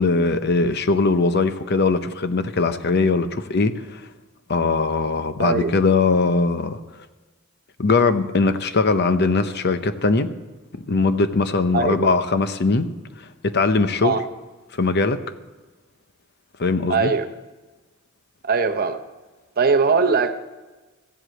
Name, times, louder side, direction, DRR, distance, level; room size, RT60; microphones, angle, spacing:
voice 1, 0.0-4.0 4.5-6.8 7.8-10.3 10.9-12.9 13.4-14.2 14.7-15.2 16.6-17.1, left 3 dB, 55° left, 10 dB, 0.8 m, -20 dB
voice 2, 5.4-5.7 11.7-12.1 14.0-14.2 16.9-17.3 18.4-19.0 19.6-20.4, right 4 dB, 45° right, 9 dB, 0.8 m, -20 dB
15.0 x 8.0 x 7.7 m, 1.2 s
head